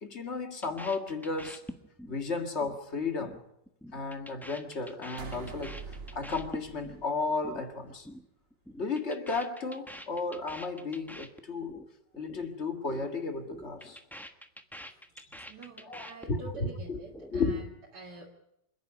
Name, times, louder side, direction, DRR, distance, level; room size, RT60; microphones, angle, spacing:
voice 1, 0.0-1.6 2.1-3.4 3.9-5.8 6.1-8.1 8.8-11.8 12.2-14.0 15.8-17.1 17.3-17.5, left 3 dB, 40° left, 2.1 m, -34 dB
sound 1, 0.6-2.2 2.4-2.8 3.0-3.4 3.7-7.0 7.3-7.6 7.9-8.2 8.5-11.9 12.1-12.5 12.7-13.1 13.4-16.7 17.0-17.6, equal, ahead, 1.0 m, -46 dB
sound 2, 5.2-7.7, right 4 dB, 50° right, 2.0 m, -45 dB
voice 2, 15.5-17.7 17.9-18.3, right 3 dB, 75° right, 2.6 m, -47 dB
27.0 x 10.5 x 9.6 m
omnidirectional pair, 1.8 m